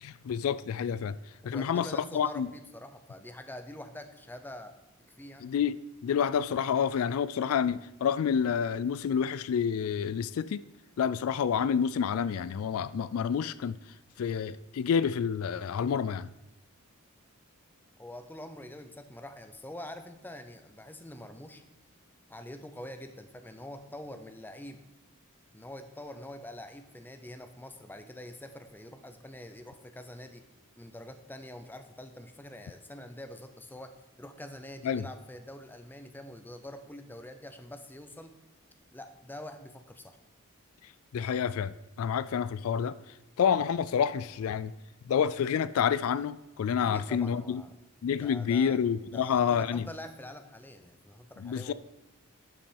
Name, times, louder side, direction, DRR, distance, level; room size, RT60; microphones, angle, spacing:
voice 1, 0.0-1.2 1.4-2.5 5.4-10.6 11.0-13.8 14.2-16.3 34.8-35.0 41.1-42.9 43.4-44.7 45.1-47.6 48.0-49.9 51.4-51.7, left 7 dB, 75° left, 16 dB, 0.3 m, -28 dB
voice 2, 1.4-4.7 5.2-5.5 18.0-21.6 22.3-24.8 25.5-30.5 30.8-38.3 38.9-40.2 46.9-47.7 48.2-48.8 49.1-51.7, left 1 dB, 10° left, 8 dB, 0.6 m, -45 dB
11.5 x 6.0 x 4.5 m, 0.95 s
head